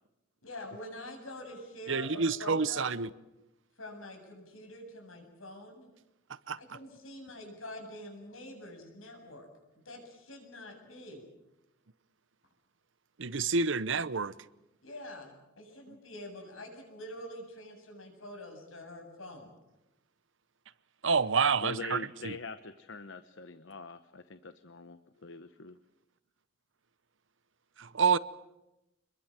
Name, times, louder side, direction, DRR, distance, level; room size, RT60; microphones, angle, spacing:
voice 1, 0.4-3.0 3.8-5.9 6.6-9.5 9.8-11.2 14.8-15.3 15.6-19.5, left 1 dB, 85° left, 7.9 m, -45 dB
voice 2, 1.9-3.1 6.5-6.6 13.2-14.3 21.0-22.4 27.8-28.2, right 5 dB, 65° right, 0.8 m, -28 dB
voice 3, 21.6-25.8, left 3 dB, 65° left, 1.0 m, -43 dB
27.0 x 22.0 x 7.5 m
head